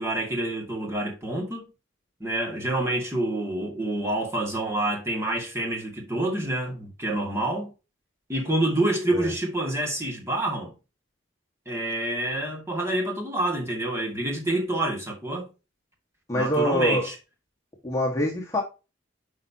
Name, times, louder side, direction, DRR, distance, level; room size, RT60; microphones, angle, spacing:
voice 1, 0.0-1.7 2.2-7.7 8.3-10.7 11.7-15.5 16.3-17.2, right 1 dB, 15° right, 1.9 m, -27 dB
voice 2, 16.3-17.1 17.8-18.6, equal, 15° left, 1.4 m, -25 dB
9.3 x 5.4 x 2.7 m
head